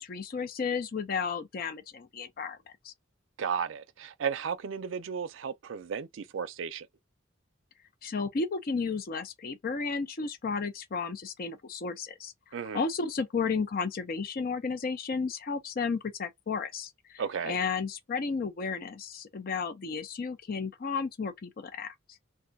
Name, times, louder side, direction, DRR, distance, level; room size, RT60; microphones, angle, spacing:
voice 1, 0.0-2.6 2.8-2.9 8.0-12.3 12.7-21.9, left 5 dB, 45° left, 0.5 m, -33 dB
voice 2, 3.4-6.9 12.5-12.8 17.2-17.6, right 6 dB, 70° right, 0.4 m, -34 dB
2.5 x 2.3 x 3.8 m
head